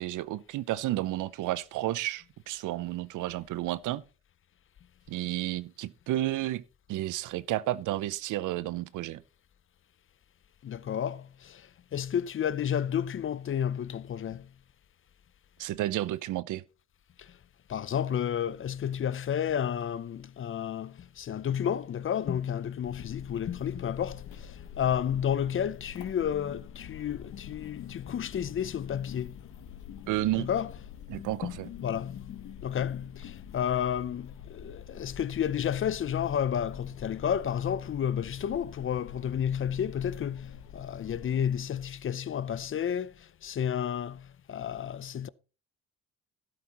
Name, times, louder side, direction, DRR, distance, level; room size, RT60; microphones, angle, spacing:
voice 1, 0.0-4.0 5.1-6.6 6.9-9.2 15.6-16.6 30.1-30.5 31.1-31.7, right 15 dB, 85° right, 0.7 m, -31 dB
voice 2, 10.6-11.5 11.9-14.4 17.7-24.2 24.8-29.3 30.4-30.7 31.4-31.6 31.8-32.2 32.6-43.1 43.4-44.2 44.5-45.3, left 9 dB, 45° left, 0.6 m, -31 dB
sound 1, 22.8-41.6, left 9 dB, 70° left, 1.2 m, -46 dB
12.5 x 11.5 x 3.0 m
cardioid pair, 90°, 30 cm